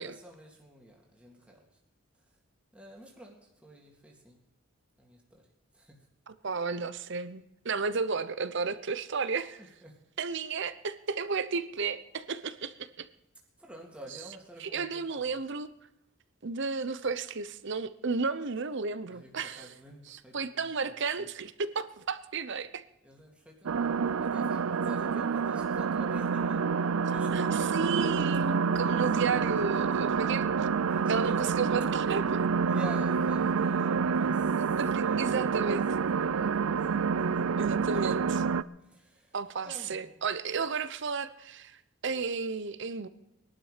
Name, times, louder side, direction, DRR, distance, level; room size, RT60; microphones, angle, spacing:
voice 1, 0.0-1.6 2.7-4.4 5.0-5.4 5.7-6.0 9.6-10.0 13.6-15.4 19.1-21.3 23.0-26.6 27.1-27.7 28.7-30.2 30.8-31.7 32.6-37.0 37.3-37.4 37.9-38.0 38.8-39.4 39.6-40.2, right 1 dB, 5° right, -2 dB, 2.3 m, -50 dB
voice 2, 6.3-9.6 10.2-13.1 14.6-15.7 16.4-19.7 20.1-22.8 27.3-30.4 31.1-32.4 34.8-35.9 37.6-38.2 39.3-41.7 42.0-43.1, right 5 dB, 60° right, 13 dB, 0.8 m, -33 dB
sound 1, 23.7-38.6, right 5 dB, 85° right, 0.5 m, -28 dB
21.0 x 11.5 x 5.0 m, 0.87 s
head